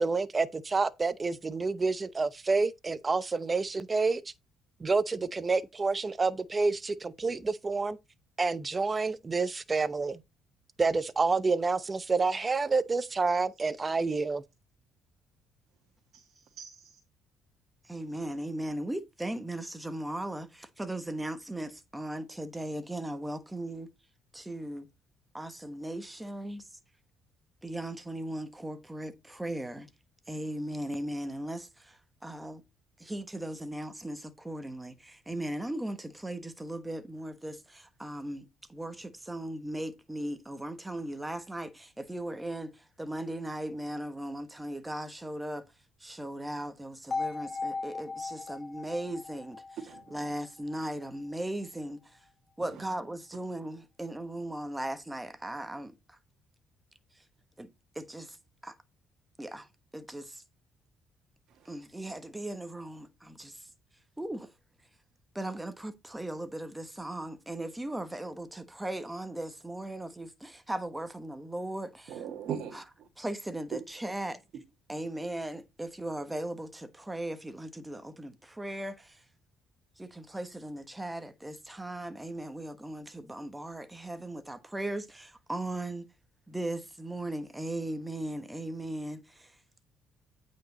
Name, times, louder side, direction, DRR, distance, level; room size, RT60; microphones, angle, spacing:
voice 1, 0.0-4.2 4.8-8.0 8.4-10.2 10.8-14.4, right 4 dB, 25° right, 0.8 m, -28 dB
voice 2, 16.1-17.0 49.9-50.2 61.5-61.7 72.1-73.1, right 8 dB, 65° right, 1.7 m, -41 dB
voice 3, 17.8-23.9 24.3-24.9 25.3-26.7 27.6-29.9 30.3-32.6 33.0-45.7 46.0-49.6 50.1-52.3 52.6-56.2 57.1-57.2 57.6-57.7 57.9-58.4 58.6-58.8 59.4-60.4 61.6-63.7 64.2-64.5 65.3-72.2 72.7-72.8 73.2-74.4 74.9-79.2 80.0-86.1 86.5-89.6, right 1 dB, 10° right, 1.3 m, -38 dB
sound 1, 47.1-51.1, left 4 dB, 25° left, 2.9 m, -38 dB
8.8 x 5.2 x 4.1 m
cardioid pair, 105°, 0 cm